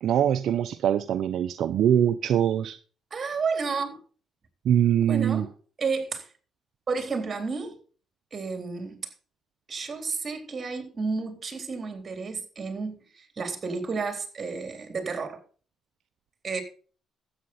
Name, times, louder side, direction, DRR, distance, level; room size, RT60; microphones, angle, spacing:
voice 1, 0.0-2.8 4.6-5.5, right 10 dB, 75° right, 0.6 m, -23 dB
voice 2, 3.1-4.0 5.1-5.5 5.8-6.3 6.9-7.8 8.3-9.0 9.7-15.4 16.4-16.6, right 4 dB, 40° right, 3.6 m, -31 dB
13.0 x 8.8 x 4.2 m
cardioid pair, 90°, 0 cm